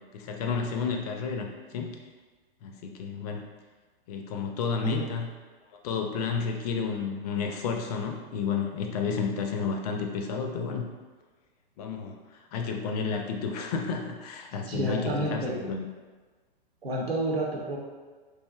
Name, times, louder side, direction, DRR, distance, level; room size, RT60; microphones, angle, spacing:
voice 1, 0.1-2.0 2.6-3.4 4.1-5.3 5.7-10.9 11.8-15.8, left 5 dB, 45° left, 3 dB, 0.4 m, -31 dB
voice 2, 14.7-15.6 16.8-17.8, right 1 dB, 90° right, -2 dB, 0.8 m, -30 dB
3.1 x 2.5 x 2.3 m, 1.4 s
hypercardioid pair, 115°, 30 cm